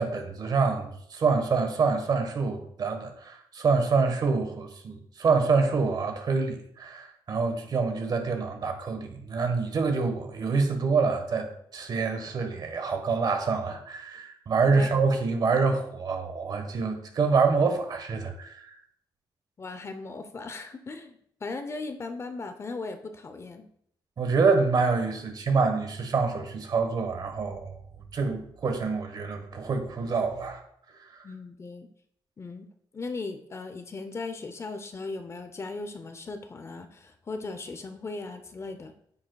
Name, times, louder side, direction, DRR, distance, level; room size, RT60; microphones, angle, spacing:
voice 1, 0.0-18.8 24.2-27.8 28.1-30.6 31.1-31.2, right 4 dB, 55° right, 5 dB, 1.3 m, -26 dB
voice 2, 19.6-21.1 21.4-23.7 31.2-31.9 32.4-38.9, left 3 dB, 35° left, 8 dB, 0.6 m, -38 dB
9.4 x 6.5 x 2.3 m, 0.68 s
cardioid pair, 105°, 8 cm